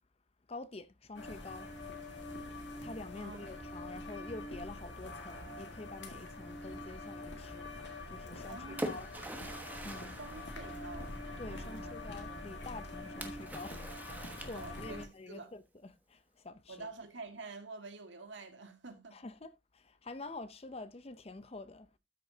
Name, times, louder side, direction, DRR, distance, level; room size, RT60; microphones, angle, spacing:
voice 1, 0.5-1.7 2.8-7.7 8.1-9.1 9.8-10.2 11.4-16.9 19.1-21.9, left 2 dB, 30° left, 0.6 m, -47 dB
sound 1, 1.2-15.1, left 2 dB, 65° left, 2.0 m, -45 dB
Splash splatter, 8.2-11.4 13.2-15.1, right 1 dB, 10° right, 1.2 m, -44 dB
voice 2, 8.5-9.3 10.2-11.1 11.5-11.9 14.5-15.5 16.7-19.2, right 3 dB, 70° right, 1.7 m, -48 dB
13.0 x 6.2 x 2.7 m
head